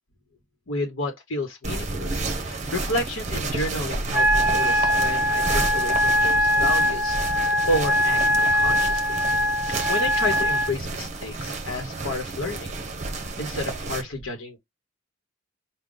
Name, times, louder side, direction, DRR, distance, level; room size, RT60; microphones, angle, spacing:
voice 1, 0.7-9.2 9.7-12.8 13.4-14.6, left 1 dB, 70° left, 1.0 m, -31 dB
sound 1, 1.6-14.0, right 3 dB, 35° right, 0.8 m, -31 dB
Wind instrument woodwind instrument, 4.1-10.7, equal, 5° right, 0.5 m, -22 dB
5.0 x 2.2 x 3.8 m
head